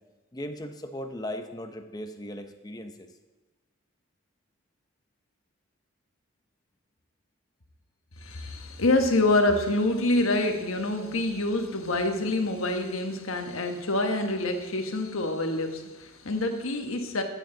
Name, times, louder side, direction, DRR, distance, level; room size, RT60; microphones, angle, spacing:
voice 1, 0.3-3.1, left 1 dB, 20° left, 7 dB, 0.7 m, -37 dB
voice 2, 8.2-17.2, left 2 dB, 85° left, 5 dB, 1.3 m, -26 dB
14.5 x 7.8 x 3.9 m, 1.2 s
head